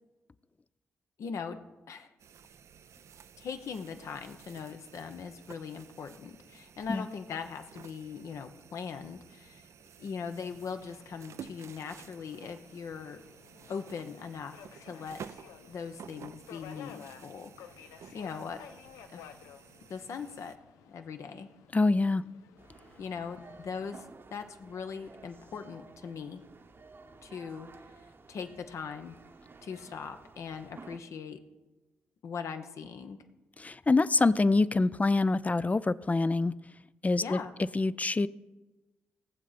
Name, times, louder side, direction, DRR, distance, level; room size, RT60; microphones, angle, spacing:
voice 1, 1.2-1.6 1.9-2.1 3.4-9.6 10.0-13.2 13.7-15.2 15.7-17.5 18.1-18.6 19.1-19.4 19.9-20.6 20.9-21.5 23.0-26.4 27.2-27.7 28.3-29.2 29.6-31.4 32.2-33.2 37.2-37.5, left 6 dB, 65° left, 7 dB, 1.0 m, -40 dB
sound 1, 2.2-20.6, right 7 dB, 60° right, 0.5 m, -52 dB
Subway metro underground, 10.3-23.9, left 9 dB, 80° left, 0.5 m, -54 dB
voice 2, 21.7-22.2 33.6-36.5 37.0-37.4 37.7-38.3, left 3 dB, 25° left, 17 dB, 0.5 m, -25 dB
sound 2, 22.6-31.0, right 3 dB, 45° right, 1.0 m, -53 dB
19.0 x 7.5 x 4.2 m, 1.1 s
hypercardioid pair, 40°, 5 cm